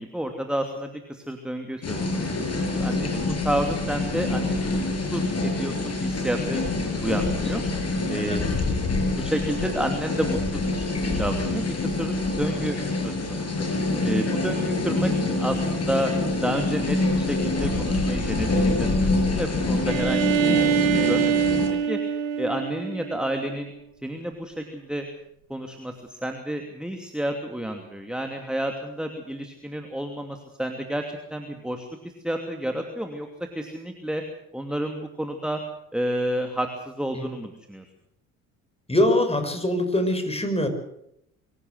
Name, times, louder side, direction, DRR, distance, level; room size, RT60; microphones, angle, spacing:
voice 1, 0.0-2.3 2.5-4.8 5.1-6.6 7.0-7.6 8.1-8.7 9.2-10.9 11.2-13.4 14.0-20.7 21.1-21.4 21.9-22.0 22.4-23.7 24.0-25.1 25.5-31.9 32.2-33.3 33.5-34.2 34.5-35.6 35.9-37.8, right 1 dB, ahead, 4 dB, 2.8 m, -30 dB
sound 1, 1.8-21.7, left 2 dB, 35° left, 6.2 m, -26 dB
Bowed string instrument, 19.9-23.6, right 8 dB, 75° right, 1.9 m, -24 dB
voice 2, 38.9-40.7, left 1 dB, 15° left, 7 dB, 5.6 m, -24 dB
24.5 x 15.5 x 8.1 m, 0.76 s
figure-of-eight pair, 55°, 41 cm